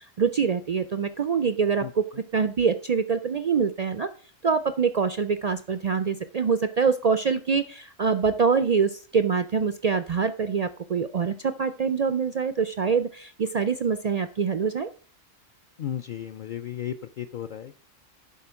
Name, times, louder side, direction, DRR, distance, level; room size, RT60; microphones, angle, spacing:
voice 1, 0.0-2.0 2.3-4.1 4.4-14.9, right 6 dB, 85° right, 11 dB, 0.3 m, -25 dB
voice 2, 15.8-17.8, left 10 dB, 65° left, 7 dB, 0.5 m, -34 dB
11.0 x 4.4 x 5.7 m, 0.41 s
omnidirectional pair, 1.3 m